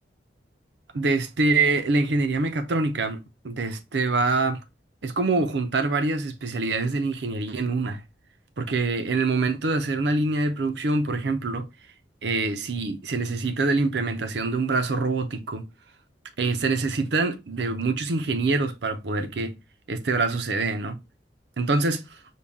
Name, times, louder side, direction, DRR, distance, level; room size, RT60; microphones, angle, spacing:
voice 1, 0.9-4.6 5.0-8.0 8.6-11.6 12.2-15.7 16.4-19.5 19.9-21.0 21.6-22.2, right 3 dB, 70° right, 0.6 m, -25 dB
5.6 x 2.3 x 3.5 m
head